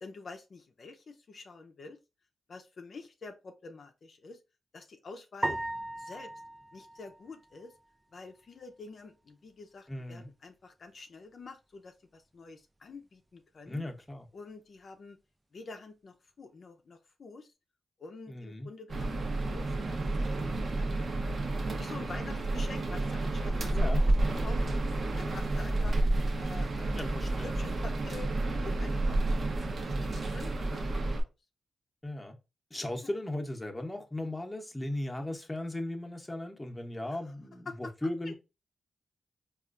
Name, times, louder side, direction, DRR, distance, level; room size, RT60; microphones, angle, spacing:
voice 1, 0.0-2.0 2.5-4.4 4.7-5.6 6.0-6.3 6.7-7.7 8.1-13.8 14.3-15.2 15.5-17.5 18.0-21.1 21.8-24.1 24.4-24.8 25.2-26.0 26.4-27.0 27.4-28.3 28.6-29.5 29.8-30.9 31.1-31.3 33.0-33.1 37.1-37.2 37.7-37.9 38.3-38.4, left 4 dB, 60° left, 0.5 m, -47 dB
sound 1, 5.4-7.9, right 1 dB, 20° right, 0.4 m, -37 dB
voice 2, 9.9-10.3 13.7-14.3 18.3-18.7 23.7-24.0 27.0-27.5 32.0-32.4 32.7-38.3, left 1 dB, 15° left, 0.8 m, -37 dB
sound 2, 18.9-31.2, right 2 dB, 55° right, 0.8 m, -30 dB
4.2 x 2.4 x 2.5 m
cardioid pair, 60°, 0 cm